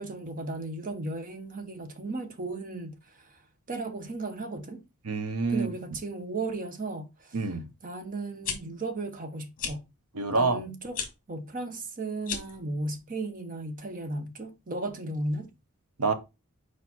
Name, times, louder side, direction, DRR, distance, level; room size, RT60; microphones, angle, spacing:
voice 1, 0.0-3.4 3.7-4.8 5.5-7.4 7.8-9.8 10.3-11.0 11.3-15.5, right 2 dB, 40° right, 1.0 m, -35 dB
voice 2, 5.0-5.7 7.3-7.7 10.1-10.6 16.0-16.1, right 4 dB, 80° right, 0.9 m, -27 dB
sound 1, 8.2-8.6 9.6-9.8 10.9-11.1 12.2-12.6, left 7 dB, 40° left, 1.4 m, -33 dB
4.8 x 4.6 x 4.2 m
head